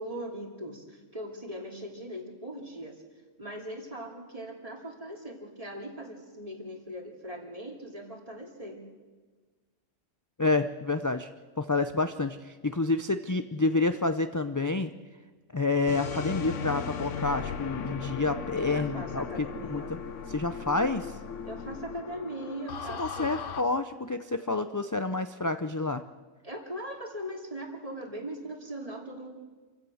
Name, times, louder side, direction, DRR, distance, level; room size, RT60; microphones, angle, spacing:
voice 1, 0.0-3.0 3.4-8.8 18.5-19.9 21.4-23.4 26.4-29.3, right 1 dB, 30° right, 2 dB, 2.8 m, -40 dB
voice 2, 10.4-11.3 11.6-14.9 15.5-20.0 20.3-21.2 23.0-26.0, left 3 dB, 25° left, 9 dB, 0.4 m, -29 dB
sound 1, 15.9-23.6, left 6 dB, 70° left, 1.3 m, -37 dB
27.5 x 16.0 x 6.4 m, 1.4 s
omnidirectional pair, 1.3 m